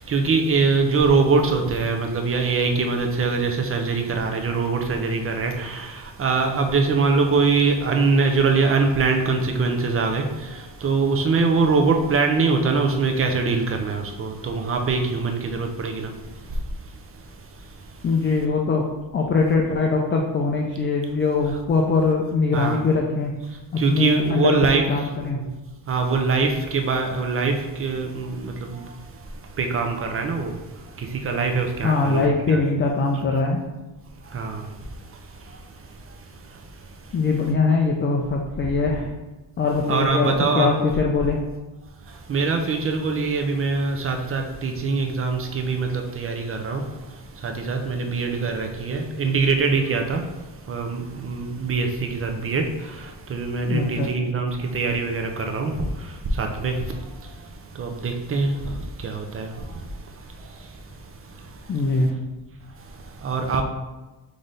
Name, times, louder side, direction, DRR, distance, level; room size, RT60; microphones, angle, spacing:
voice 1, 0.0-18.2 22.5-22.8 23.5-25.1 25.3-25.5 25.9-32.6 34.2-37.2 39.9-40.7 42.0-62.1 62.7-63.6, right 4 dB, 30° right, 4 dB, 0.6 m, -24 dB
voice 2, 18.0-18.8 19.1-23.3 23.7-24.5 24.9-25.0 25.2-25.4 31.8-33.6 37.1-39.1 39.6-40.3 40.5-41.4 53.7-54.1 61.7-62.1, left 4 dB, 25° left, 0 dB, 0.4 m, -22 dB
3.9 x 3.2 x 3.9 m, 1.1 s
cardioid pair, 120°, 45 cm